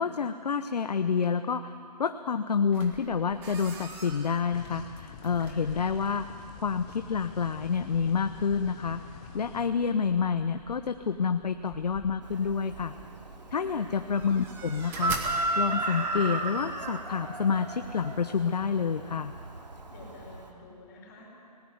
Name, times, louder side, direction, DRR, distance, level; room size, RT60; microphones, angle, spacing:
voice 1, 0.0-6.3 6.6-9.0 9.3-12.9 13.5-19.3, left 6 dB, 70° left, 9 dB, 0.9 m, -28 dB
sound 1, 2.7-16.3, right 4 dB, 10° right, 1.2 m, -46 dB
sound 2, 4.5-9.7, left 7 dB, 10° left, 0.5 m, -47 dB
Chicken rooster, 12.2-20.5, right 2 dB, 80° right, 2.7 m, -35 dB
voice 2, 13.5-13.8 19.9-21.3, left 2 dB, 25° left, -2 dB, 5.5 m, -49 dB
19.5 x 18.5 x 8.0 m, 2.5 s
hypercardioid pair, 160°, 21 cm